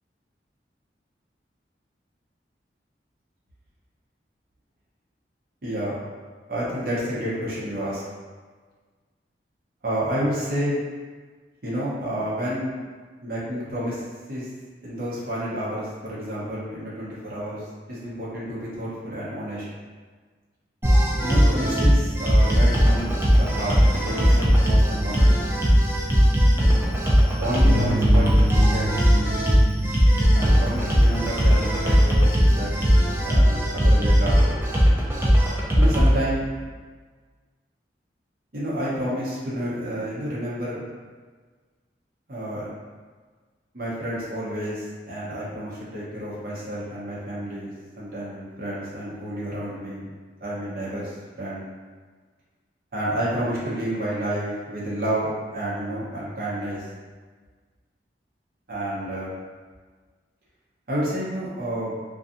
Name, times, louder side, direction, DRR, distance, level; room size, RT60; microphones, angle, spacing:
voice 1, 5.6-6.0 6.5-8.0 9.8-10.8 11.6-12.7 13.2-14.0 14.3-14.5 14.8-19.6 21.2-25.4 27.4-28.3 28.5-29.6 30.3-32.8 33.2-34.5 35.7-36.5 38.5-40.8 42.3-42.7 43.7-50.1 50.4-51.6 52.9-56.8 58.7-59.3 60.9-62.0, equal, 55° right, -7 dB, 0.7 m, -30 dB
sound 1, 20.8-36.2, equal, 15° right, 0.4 m, -18 dB
Bass guitar, 27.7-33.9, right 1 dB, 75° left, 0.4 m, -31 dB
2.6 x 2.2 x 2.5 m, 1.5 s
head